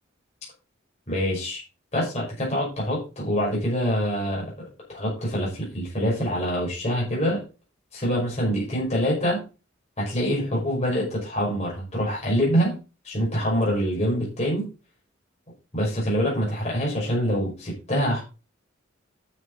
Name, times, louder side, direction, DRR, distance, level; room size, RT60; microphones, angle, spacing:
voice 1, 1.1-1.6 1.9-4.5 4.9-7.4 7.9-9.4 10.0-12.7 13.0-14.7 15.7-18.2, equal, 35° left, -4 dB, 5.5 m, -25 dB
9.7 x 7.2 x 4.0 m, 0.32 s
head